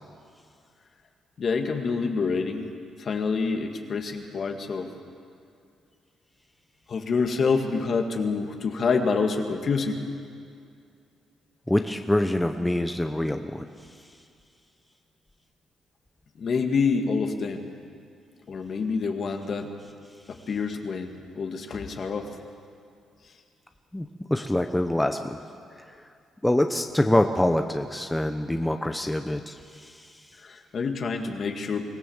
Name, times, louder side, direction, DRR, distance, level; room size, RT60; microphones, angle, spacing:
voice 1, 1.4-2.7 3.0-4.9 6.9-10.0 16.4-17.7 18.5-19.7 20.3-22.4 30.4-31.8, left 4 dB, 50° left, 4 dB, 2.1 m, -27 dB
voice 2, 11.7-13.7 23.9-25.4 25.7-25.8 26.4-30.2, left 1 dB, 10° left, 6 dB, 0.9 m, -25 dB
24.5 x 16.5 x 7.3 m, 2.4 s
cardioid pair, 90°, 0 cm